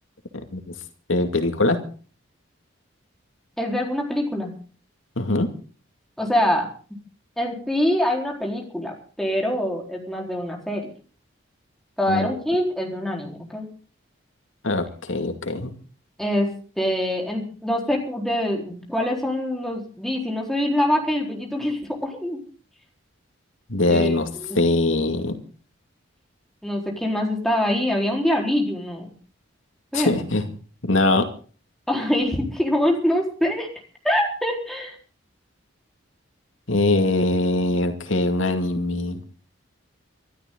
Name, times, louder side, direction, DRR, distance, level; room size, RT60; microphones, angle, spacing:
voice 1, 1.1-1.8 5.2-5.5 12.1-12.3 14.6-15.7 23.7-24.3 24.5-25.3 29.9-30.4 30.8-31.3 36.7-39.2, left 2 dB, 80° left, 6 dB, 2.4 m, -22 dB
voice 2, 3.6-4.5 6.2-6.7 7.4-10.9 12.0-13.7 16.2-16.5 16.8-22.4 23.9-24.6 26.6-29.1 29.9-30.2 31.9-33.7 34.0-35.0, left 1 dB, ahead, 0 dB, 4.1 m, -24 dB
25.5 x 12.5 x 3.9 m, 0.40 s
head